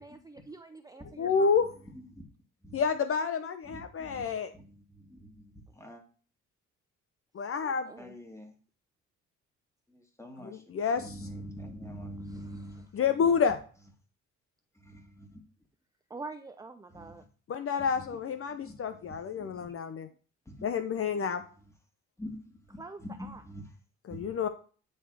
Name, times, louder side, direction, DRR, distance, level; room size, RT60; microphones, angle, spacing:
voice 1, 0.0-1.5 7.6-8.1 12.3-12.8 16.1-17.2 22.8-23.4, right 3 dB, 10° right, 7 dB, 0.5 m, -46 dB
voice 2, 1.2-1.7 2.7-4.5 7.3-7.9 10.4-11.3 12.9-13.6 17.5-20.1 20.6-21.4 24.1-24.5, left 6 dB, 50° left, 9 dB, 0.7 m, -29 dB
voice 3, 3.6-4.2 4.6-6.0 8.0-8.5 9.9-10.6 11.0-13.1 14.8-15.4 16.9-17.1 18.6-18.8 19.4-19.6 20.5-20.7 21.1-21.3 22.2-22.5 23.0-23.6 24.1-24.3, equal, 10° left, 2 dB, 2.0 m, -45 dB
9.8 x 3.5 x 4.7 m, 0.39 s
cardioid pair, 90°, 30 cm